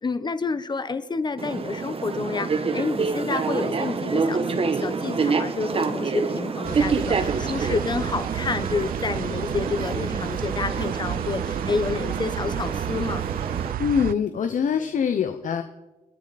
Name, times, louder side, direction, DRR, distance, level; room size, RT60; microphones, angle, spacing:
voice 1, 0.0-13.2, left 4 dB, 30° left, 1.1 m, -29 dB
sound 1, 1.4-13.7, right 4 dB, 40° right, 1.3 m, -27 dB
sound 2, 6.6-14.1, right 12 dB, 80° right, 0.4 m, -31 dB
voice 2, 13.8-15.6, left 7 dB, 60° left, 1.1 m, -24 dB
29.5 x 10.0 x 4.2 m
cardioid pair, 120°, 15 cm